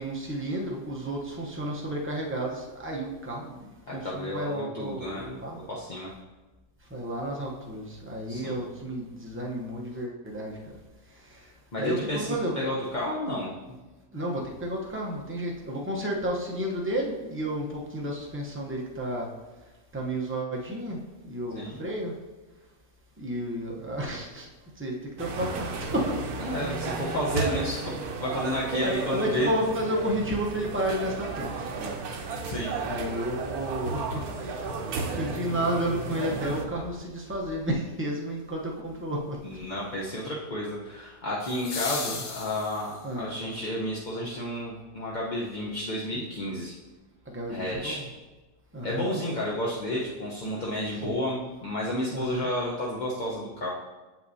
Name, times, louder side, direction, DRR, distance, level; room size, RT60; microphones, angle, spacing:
voice 1, 0.0-5.6 6.9-10.6 11.3-11.5 11.8-12.6 14.1-19.3 19.9-21.0 21.2-22.1 23.2-24.5 24.8-26.2 28.6-32.0 32.8-34.7 34.9-39.4 42.1-42.2 43.0-43.3 47.3-48.0 48.7-49.1 51.0-51.2 52.1-52.5, right 1 dB, 15° right, -2 dB, 0.5 m, -32 dB
voice 2, 3.9-5.3 5.5-6.1 8.3-8.6 11.7-13.8 21.5-21.8 26.4-29.5 32.4-32.7 39.4-46.7 47.5-48.0 48.8-53.7, left 1 dB, 40° left, -5 dB, 0.7 m, -31 dB
sound 1, 25.2-36.7, right 4 dB, 75° right, 1.2 m, -33 dB
sound 2, 35.8-35.9 41.4-43.2 45.4-45.5, left 5 dB, 60° left, 1.0 m, -36 dB
7.9 x 5.9 x 2.7 m, 1.2 s
omnidirectional pair, 1.7 m